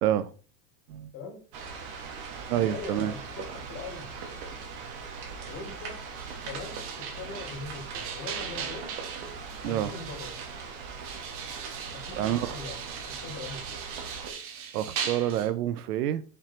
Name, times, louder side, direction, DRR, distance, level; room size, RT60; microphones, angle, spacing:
voice 1, 0.0-0.3 0.9-1.1 2.5-3.1 9.6-9.9 12.2-12.5 14.7-16.2, right 12 dB, 90° right, 0.9 m, -27 dB
sound 1, 1.5-14.3, right 5 dB, 45° right, 2.0 m, -40 dB
voice 2, 2.6-3.4 3.7-4.1 5.4-6.0 6.5-9.1 9.6-10.3 11.9-12.8 13.2-13.8, left 4 dB, 30° left, 3.4 m, -41 dB
sound 2, 6.2-10.6 11.0-15.5, right 7 dB, 30° right, 1.1 m, -39 dB
7.5 x 5.6 x 4.4 m
supercardioid pair, 165°, 44 cm